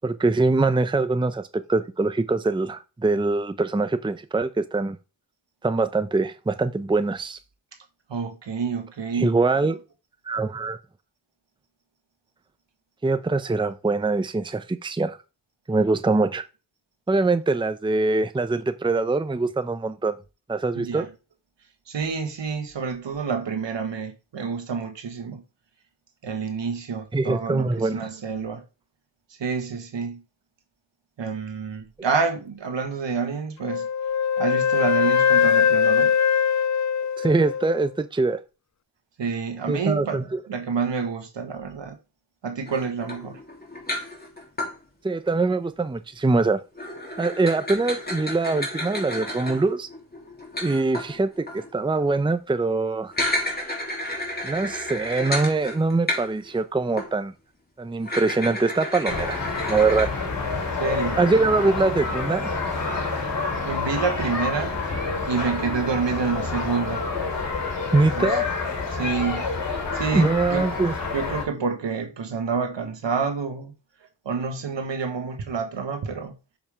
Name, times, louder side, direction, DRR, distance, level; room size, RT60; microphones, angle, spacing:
voice 1, 0.0-5.0 5.6-7.4 9.1-9.8 10.3-10.8 13.0-15.2 15.7-16.4 17.1-20.2 20.5-21.0 27.1-28.1 37.2-38.4 39.7-40.2 45.0-46.6 47.2-49.9 50.6-53.1 54.4-57.3 57.8-60.1 61.2-62.5 67.9-68.4 70.1-70.9, right 3 dB, 10° right, 0.6 m, -23 dB
voice 2, 8.1-9.4 9.6-9.7 20.7-21.1 21.9-25.4 26.2-28.6 29.4-30.2 31.2-33.9 34.4-36.2 39.2-42.0 42.4-43.4 60.8-61.2 63.6-64.7 65.3-67.1 68.1-68.4 68.9-69.5 69.9-70.7 71.1-73.7 74.2-76.3, right 5 dB, 70° right, 1.6 m, -28 dB
Wind instrument woodwind instrument, 33.6-37.9, left 7 dB, 40° left, 0.5 m, -21 dB
sound 1, 42.7-44.8 46.7-51.7 53.0-56.6 57.0-57.1 58.0-60.1, left 1 dB, 20° left, 2.9 m, -31 dB
sound 2, 59.1-71.4, left 4 dB, 65° left, 2.9 m, -28 dB
7.0 x 5.5 x 3.5 m
cardioid pair, 50°, 45 cm